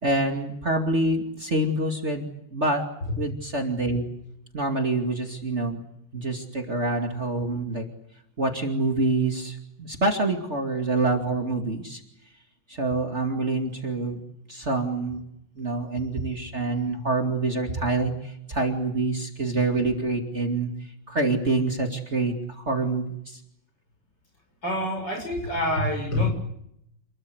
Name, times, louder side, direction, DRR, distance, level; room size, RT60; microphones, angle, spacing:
voice 1, 0.0-2.8 3.2-4.0 4.5-5.8 6.1-7.9 8.4-12.0 12.7-14.2 14.5-15.2 15.6-23.4, right 2 dB, 35° right, 3 dB, 2.8 m, -26 dB
voice 2, 24.6-26.3, left 1 dB, 60° left, 3 dB, 7.5 m, -26 dB
28.0 x 22.0 x 8.0 m, 0.76 s
omnidirectional pair, 2.1 m